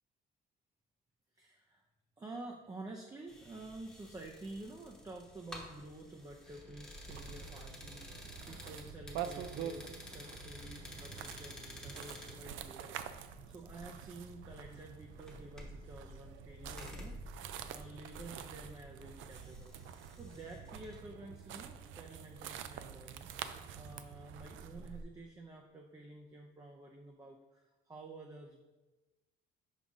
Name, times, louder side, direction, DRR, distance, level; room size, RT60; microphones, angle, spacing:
voice 1, 1.3-1.8 2.2-19.7 20.1-23.3 23.7-28.6, right 2 dB, 20° right, 1 dB, 0.5 m, -50 dB
sound 1, 3.3-21.0, left 1 dB, 5° left, 1.0 m, -52 dB
sound 2, 7.1-25.0, right 9 dB, 80° right, 0.4 m, -47 dB
5.5 x 5.0 x 3.6 m, 1.1 s
cardioid pair, 125°, 20 cm